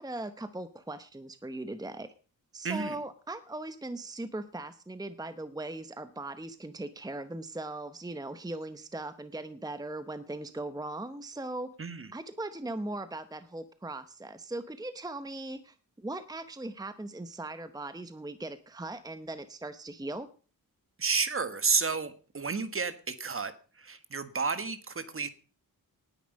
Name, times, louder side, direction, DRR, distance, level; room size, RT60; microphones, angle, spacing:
voice 1, 0.0-2.1 2.5-11.7 12.1-20.3, right 2 dB, 10° right, 11 dB, 0.9 m, -39 dB
voice 2, 2.6-3.0 11.8-12.1 21.0-23.5 23.8-25.3, right 4 dB, 40° right, 12 dB, 1.4 m, -31 dB
19.0 x 10.0 x 5.3 m, 0.40 s
wide cardioid pair, 140°, 35 cm